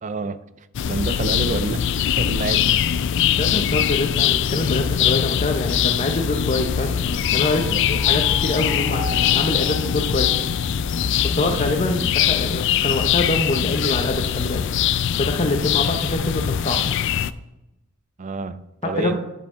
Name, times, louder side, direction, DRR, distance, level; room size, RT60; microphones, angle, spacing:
voice 1, 0.0-0.4 0.9-1.9 2.2-2.7 7.6-7.8 18.2-19.2, right 3 dB, 35° right, 13 dB, 0.4 m, -28 dB
sound 1, 0.7-17.3, left 9 dB, 60° left, 0.4 m, -22 dB
sound 2, 1.1-13.9, right 1 dB, 80° right, 2.8 m, -43 dB
voice 2, 3.2-10.3 11.2-14.7 15.2-16.8 18.8-19.2, left 2 dB, 35° left, 3 dB, 0.8 m, -25 dB
sound 3, 6.4-11.4, left 1 dB, ahead, 2.4 m, -36 dB
10.5 x 8.4 x 3.7 m, 0.94 s
head